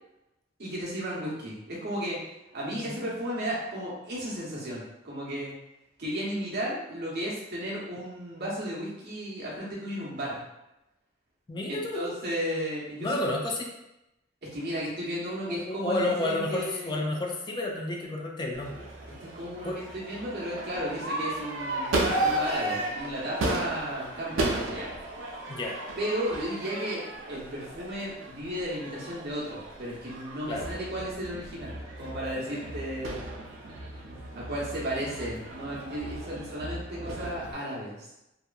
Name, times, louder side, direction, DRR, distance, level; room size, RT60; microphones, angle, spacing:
voice 1, 0.6-2.2 2.5-5.6 6.0-10.4 11.7-13.1 14.4-17.0 19.1-25.0 26.0-31.7 32.0-33.2 34.3-38.1, equal, 55° right, -6 dB, 0.9 m, -34 dB
voice 2, 2.7-3.1 11.5-12.2 13.0-13.7 15.3-18.9 19.6-19.8 25.5-25.8 30.5-30.7, left 2 dB, 25° left, 0 dB, 0.3 m, -31 dB
Crowd / Fireworks, 18.5-37.5, right 2 dB, 85° right, 0.5 m, -34 dB
2.8 x 2.4 x 2.2 m, 0.91 s
head